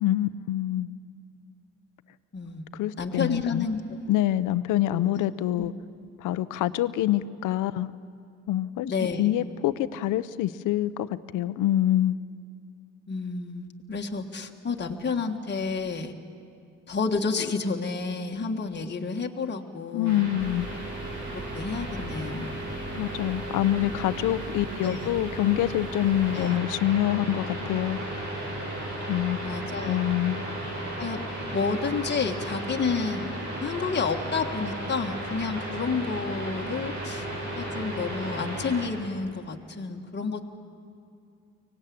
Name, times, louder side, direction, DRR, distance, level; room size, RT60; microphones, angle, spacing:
voice 1, 0.0-0.9 2.7-3.6 4.1-5.7 6.2-7.9 8.5-8.9 9.2-11.1 11.3-12.2 19.9-20.7 22.9-28.0 29.1-29.4 29.8-30.4, left 13 dB, 85° left, 15 dB, 0.7 m, -26 dB
voice 2, 2.3-2.7 3.0-4.0 4.9-5.0 5.6-5.7 8.8-9.3 13.1-16.1 16.9-20.2 21.3-22.5 23.8-23.9 24.8-25.1 26.3-26.6 29.4-30.1 31.0-33.3 33.6-37.3 37.6-40.5, left 4 dB, 35° left, 2 dB, 1.6 m, -30 dB
sound 1, 20.0-38.9, right 1 dB, 75° right, 8.0 m, -35 dB
sound 2, 20.4-26.5, right 2 dB, 40° right, 2.8 m, -41 dB
24.0 x 18.5 x 8.6 m, 2.4 s
cardioid pair, 90°, 30 cm